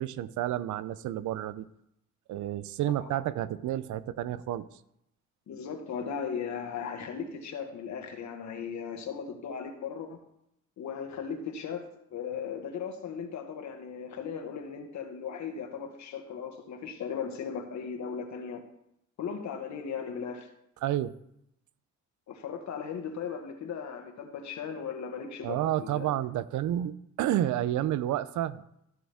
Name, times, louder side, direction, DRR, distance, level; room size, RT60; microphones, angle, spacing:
voice 1, 0.0-1.7 2.3-4.7 20.8-21.1 25.4-28.6, right 12 dB, 75° right, 16 dB, 0.6 m, -30 dB
voice 2, 5.5-10.2 10.8-11.8 12.1-18.6 19.2-20.5 22.3-26.1, left 6 dB, 65° left, 5 dB, 1.6 m, -37 dB
15.0 x 6.3 x 3.5 m, 0.78 s
cardioid pair, 90°, 30 cm